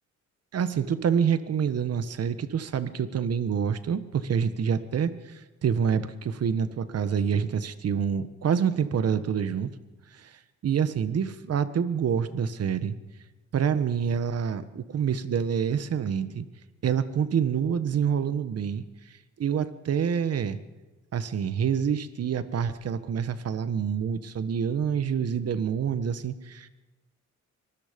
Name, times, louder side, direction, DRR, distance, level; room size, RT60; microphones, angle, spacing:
voice 1, 0.5-9.7 10.1-10.4 10.6-13.0 13.5-16.4 16.8-18.8 19.4-20.6 21.1-26.7, right 7 dB, 55° right, 12 dB, 1.4 m, -27 dB
24.5 x 20.5 x 5.3 m, 1.2 s
cardioid pair, 90°, 30 cm